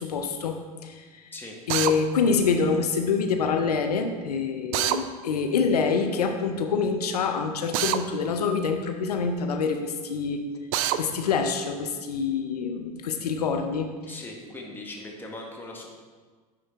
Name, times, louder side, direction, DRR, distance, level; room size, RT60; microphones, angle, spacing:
voice 1, 0.0-1.2 1.7-10.5 11.0-13.9, left 5 dB, 85° left, 5 dB, 0.6 m, -26 dB
Drill, 1.7-1.9 4.7-5.0 7.7-8.0 10.7-11.0, right 12 dB, 65° right, 0.4 m, -24 dB
voice 2, 14.1-15.9, left 2 dB, 10° left, -1 dB, 1.4 m, -39 dB
9.6 x 3.8 x 3.5 m, 1.4 s
hypercardioid pair, 80°, 19 cm